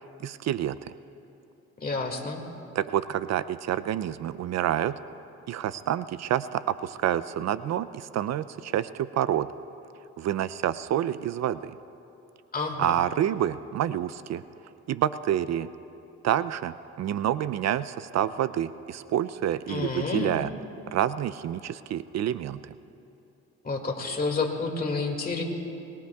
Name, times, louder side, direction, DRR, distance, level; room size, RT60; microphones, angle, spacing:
voice 1, 0.2-0.9 2.7-5.0 5.5-9.5 10.2-11.7 12.8-14.4 14.9-15.7 16.2-20.5 20.9-22.7, right 11 dB, 60° right, 14 dB, 0.5 m, -28 dB
voice 2, 1.8-2.4 12.5-12.9 19.7-20.4 23.6-25.4, left 4 dB, 30° left, 2 dB, 2.1 m, -29 dB
23.5 x 20.5 x 2.3 m, 2.8 s
cardioid pair, 90°, 30 cm